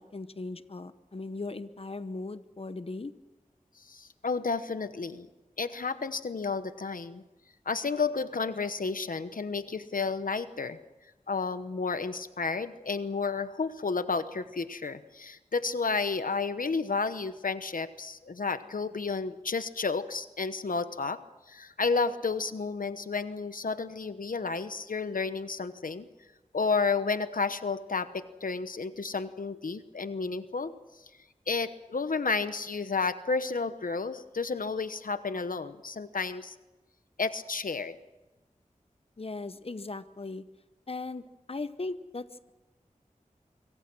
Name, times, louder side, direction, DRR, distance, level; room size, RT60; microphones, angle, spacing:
voice 1, 0.0-3.1 39.2-40.4 40.9-42.5, left 3 dB, 45° left, 12 dB, 0.9 m, -38 dB
voice 2, 3.9-5.3 5.6-7.2 7.7-10.8 11.3-21.2 21.5-26.1 26.5-30.7 31.5-36.5 37.2-38.0, left 4 dB, 85° left, 11 dB, 1.0 m, -31 dB
25.5 x 24.0 x 6.2 m, 1.1 s
wide cardioid pair, 55°, 14 cm